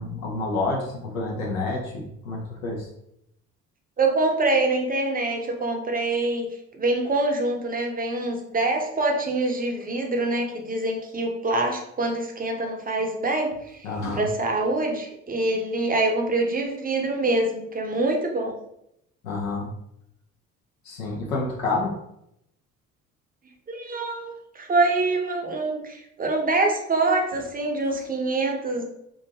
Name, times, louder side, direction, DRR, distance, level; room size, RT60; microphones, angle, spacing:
voice 1, 0.0-2.8 13.8-14.2 19.2-19.7 20.8-21.9, left 3 dB, 85° left, -1 dB, 0.6 m, -28 dB
voice 2, 4.0-6.5 6.8-13.6 14.2-18.5 23.7-28.8, right 2 dB, 20° right, 2 dB, 0.6 m, -25 dB
2.5 x 2.3 x 2.8 m, 0.78 s
hypercardioid pair, 50°, 40 cm